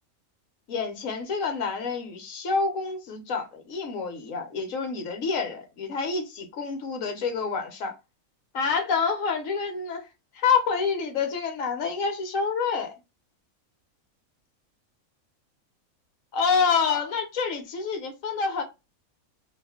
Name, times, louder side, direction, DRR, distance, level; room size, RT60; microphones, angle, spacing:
voice 1, 0.7-7.9 8.5-10.1 10.3-12.9 16.3-18.6, left 5 dB, 70° left, 1.2 m, -27 dB
2.8 x 2.4 x 3.4 m
omnidirectional pair, 1.5 m